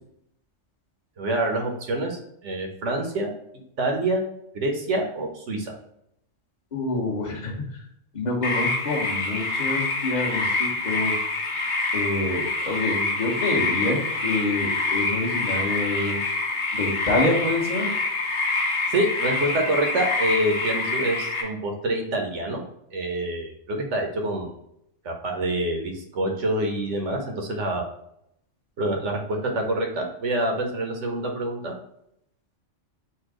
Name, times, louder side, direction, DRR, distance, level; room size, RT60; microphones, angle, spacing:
voice 1, 1.2-3.3 3.8-4.2 4.5-5.7 18.9-22.6 22.9-24.5 25.0-27.8 28.8-31.7, right 1 dB, 75° right, 2 dB, 1.2 m, -26 dB
voice 2, 6.7-7.5 8.1-11.1 11.9-16.2 16.7-17.9, left 2 dB, 40° left, -2 dB, 1.1 m, -27 dB
sound 1, 8.4-21.4, left 3 dB, 65° left, 1.1 m, -26 dB
4.3 x 2.4 x 4.8 m, 0.76 s
omnidirectional pair, 1.2 m